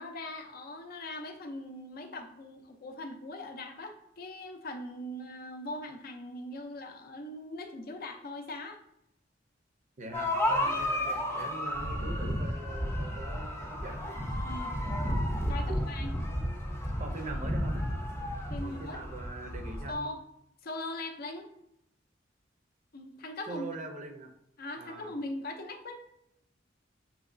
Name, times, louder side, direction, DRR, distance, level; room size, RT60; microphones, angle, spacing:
voice 1, 0.0-8.8 10.6-10.8 14.4-14.8 15.5-16.1 18.5-19.0 19.9-20.2 20.6-21.5 22.9-23.7 24.6-26.0, left 1 dB, 55° left, 5 dB, 0.5 m, -40 dB
voice 2, 10.0-14.2 15.6-15.8 17.0-17.8 18.6-20.1 23.5-24.3 24.8-25.1, right 2 dB, 40° right, 4 dB, 0.5 m, -42 dB
sound 1, 10.1-19.9, equal, 15° left, 0.6 m, -32 dB
6.2 x 2.9 x 2.5 m, 0.79 s
head